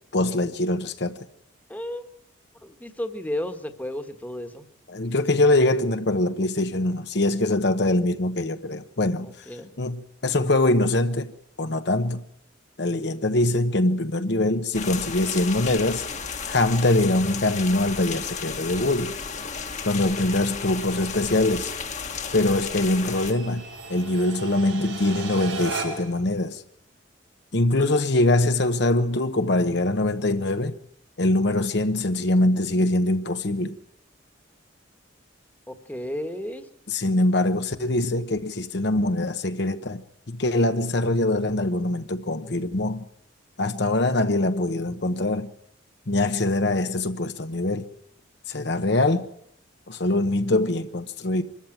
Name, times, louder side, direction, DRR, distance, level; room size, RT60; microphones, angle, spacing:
voice 1, 0.1-1.2 4.9-9.3 9.8-11.3 11.6-12.2 12.8-16.0 16.5-19.2 19.8-21.7 22.3-23.6 23.9-26.6 27.5-30.8 31.2-33.7 36.9-40.0 40.3-43.0 43.6-45.5 46.1-47.9 48.5-49.3 49.9-51.4, left 2 dB, 60° left, 1.0 m, -23 dB
voice 2, 1.7-2.1 2.6-4.6 9.2-9.7 27.8-27.9 35.7-36.7, left 1 dB, 10° left, 1.4 m, -33 dB
sound 1, 14.7-23.3, left 6 dB, 35° left, 1.4 m, -33 dB
sound 2, 16.2-26.2, right 3 dB, 90° right, 6.5 m, -39 dB
24.0 x 14.0 x 8.9 m
head